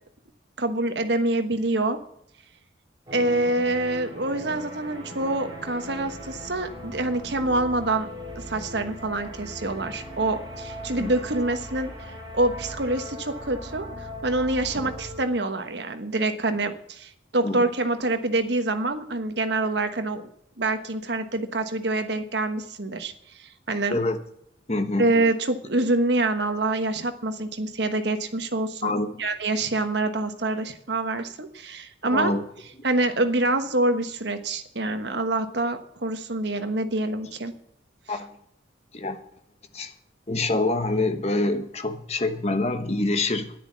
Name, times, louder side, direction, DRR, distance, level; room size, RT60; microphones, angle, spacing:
voice 1, 0.6-2.0 3.1-8.1 8.3-11.9 12.3-13.9 14.2-20.3 20.6-24.0 25.0-28.9 29.2-32.3 32.8-37.5, right 2 dB, 65° right, 8 dB, 1.3 m, -26 dB
sound 1, 3.1-15.2, equal, 25° right, 3.5 m, -39 dB
voice 2, 24.7-25.1 28.8-29.1 32.1-32.4 38.1-38.3 38.9-39.2 39.7-39.9 40.3-43.5, left 2 dB, 35° left, 8 dB, 1.2 m, -26 dB
10.5 x 9.7 x 7.4 m, 0.73 s
head